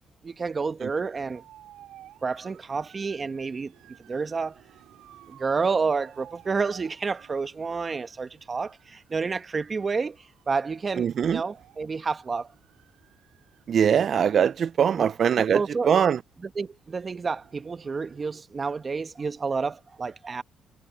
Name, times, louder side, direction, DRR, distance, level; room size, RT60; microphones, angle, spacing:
voice 1, 0.2-1.4 2.2-3.7 4.1-4.6 5.3-10.2 10.5-12.5 14.9-15.1 15.4-16.0 16.4-20.4, right 4 dB, 35° right, 1.3 m, -29 dB
sound 1, 1.2-18.4, right 13 dB, 85° right, 5.6 m, -56 dB
voice 2, 11.0-11.4 13.7-15.6 15.9-16.2, right 8 dB, 55° right, 0.4 m, -22 dB
cardioid pair, 90°, 0 cm